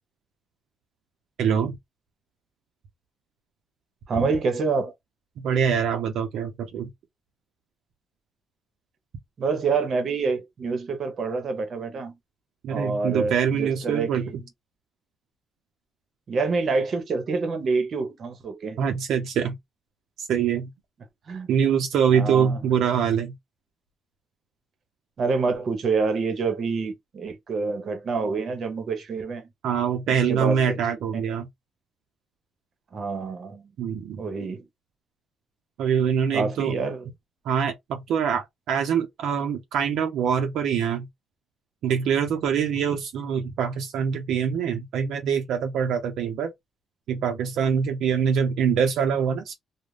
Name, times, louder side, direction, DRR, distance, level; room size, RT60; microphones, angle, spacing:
voice 1, 1.4-1.8 4.2-4.3 5.4-6.9 12.6-14.3 18.8-19.5 20.2-20.7 21.5-23.3 29.6-31.5 33.8-34.2 35.8-36.7 37.4-41.1 41.8-46.5 47.1-49.6, right 7 dB, 80° right, 0.6 m, -24 dB
voice 2, 4.1-4.9 9.4-12.2 12.7-14.4 16.3-18.8 21.3-21.5 22.1-22.6 25.2-29.4 30.3-31.2 32.9-33.7 34.2-34.6 36.3-37.1, right 4 dB, 55° right, 0.9 m, -27 dB
2.4 x 2.1 x 3.2 m
cardioid pair, 90°, 0 cm